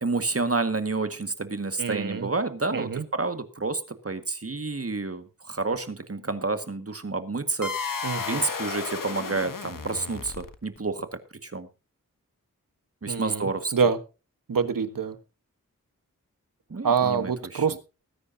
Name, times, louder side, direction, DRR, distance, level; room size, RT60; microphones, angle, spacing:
voice 1, 0.0-7.9 8.2-11.1 11.4-11.7 13.0-13.7 16.7-17.6, right 3 dB, 45° right, 9 dB, 1.9 m, -29 dB
voice 2, 1.8-2.3 2.7-3.0 8.0-8.4 13.1-14.0 14.5-15.2 16.8-17.8, right 6 dB, 80° right, 11 dB, 1.4 m, -26 dB
sound 1, 7.6-10.8, left 5 dB, 75° left, 1.5 m, -33 dB
20.0 x 9.8 x 2.8 m, 0.31 s
cardioid pair, 40°, 33 cm